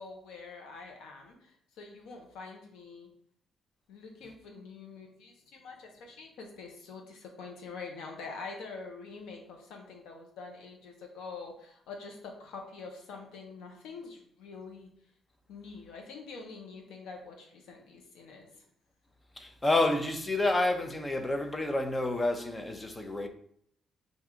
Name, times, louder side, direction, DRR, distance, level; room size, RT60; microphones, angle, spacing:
voice 1, 0.0-3.1 3.9-14.9 15.5-18.6, left 4 dB, 85° left, 1.0 m, -45 dB
voice 2, 19.4-23.3, left 2 dB, 20° left, 0.6 m, -29 dB
4.7 x 2.7 x 3.7 m
cardioid pair, 90°, 0 cm